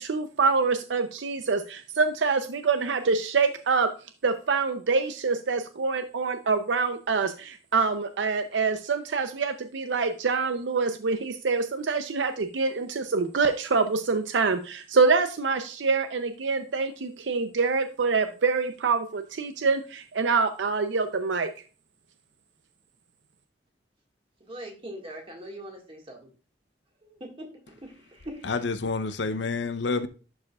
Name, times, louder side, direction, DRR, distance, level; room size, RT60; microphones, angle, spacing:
voice 1, 0.0-3.9 4.2-21.5, right 4 dB, 85° right, 0.6 m, -25 dB
voice 2, 24.4-26.3 27.0-28.5, right 1 dB, 30° right, 1.8 m, -42 dB
voice 3, 28.4-30.1, left 4 dB, 75° left, 0.7 m, -28 dB
11.5 x 4.8 x 2.4 m
head